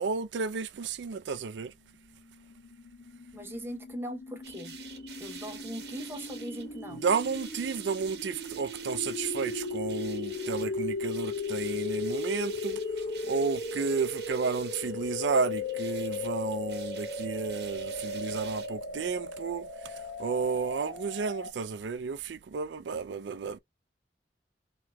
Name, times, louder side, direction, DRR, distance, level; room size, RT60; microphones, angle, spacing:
voice 1, 0.0-1.7 6.9-23.6, right 5 dB, 90° right, 0.4 m, -32 dB
sound 1, 2.3-21.5, left 3 dB, 70° left, 0.9 m, -37 dB
voice 2, 3.3-4.8 5.2-7.0, equal, 15° right, 0.9 m, -40 dB
sound 2, 4.4-18.8, right 7 dB, 65° right, 1.0 m, -48 dB
3.0 x 2.9 x 3.4 m
head